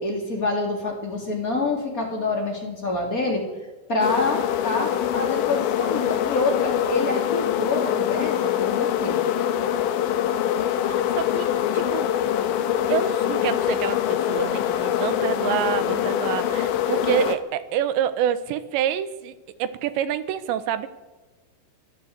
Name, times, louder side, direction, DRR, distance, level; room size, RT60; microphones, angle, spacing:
voice 1, 0.0-3.4 3.9-9.2, left 2 dB, 20° left, 0 dB, 3.1 m, -27 dB
sound 1, 4.0-17.4, left 10 dB, 85° left, 3.4 m, -24 dB
voice 2, 11.1-12.2 12.9-19.3 19.6-20.9, right 10 dB, 80° right, 12 dB, 3.3 m, -27 dB
28.5 x 12.0 x 8.2 m, 1.3 s
omnidirectional pair, 5.1 m